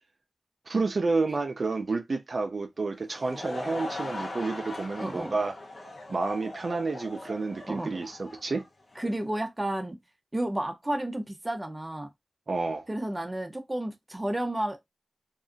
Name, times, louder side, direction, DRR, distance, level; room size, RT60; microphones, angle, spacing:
voice 1, 0.7-5.5 6.1-8.6 12.5-12.9, right 3 dB, 70° right, 0.5 m, -30 dB
Laughter / Crowd, 2.9-9.2, left 2 dB, 80° left, 0.9 m, -40 dB
voice 2, 5.0-5.4 7.7-7.9 9.0-10.0 10.3-12.1 12.9-14.9, right 1 dB, 25° right, 0.8 m, -32 dB
2.7 x 2.4 x 2.4 m
cardioid pair, 45°, 0 cm